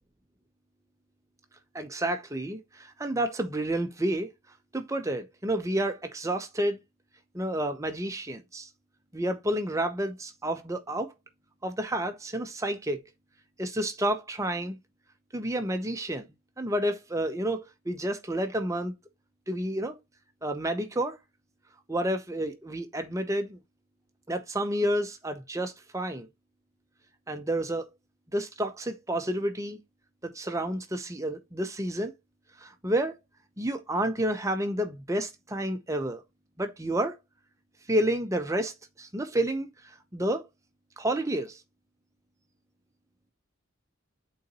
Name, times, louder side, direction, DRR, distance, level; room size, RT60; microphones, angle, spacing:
voice 1, 1.7-4.3 4.7-6.8 7.3-8.7 9.1-11.1 11.6-13.0 13.6-14.8 15.3-16.3 16.6-18.9 19.5-20.0 20.4-21.2 21.9-23.6 24.3-26.3 27.3-27.9 28.3-29.8 30.2-32.1 32.6-33.2 33.6-36.2 36.6-37.2 37.9-39.7 40.1-40.4 41.0-41.6, right 1 dB, 15° right, 0.7 m, -30 dB
8.3 x 3.9 x 2.9 m
head